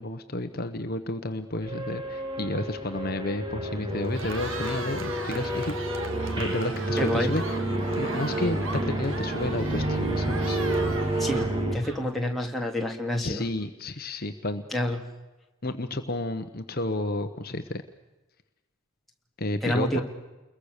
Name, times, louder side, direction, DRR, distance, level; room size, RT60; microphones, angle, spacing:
voice 1, 0.0-5.8 6.4-7.4 7.9-10.6 13.2-14.6 15.6-17.8 19.4-20.0, left 2 dB, 45° left, 7 dB, 1.1 m, -31 dB
sound 1, 1.6-11.8, right 1 dB, 20° right, 2.6 m, -29 dB
Cheering, 4.0-12.3, right 3 dB, 60° right, 1.8 m, -39 dB
voice 2, 7.0-7.4 11.2-13.5 14.7-15.0 19.6-20.0, left 1 dB, ahead, -1 dB, 2.6 m, -28 dB
29.0 x 22.0 x 6.7 m, 1.1 s
head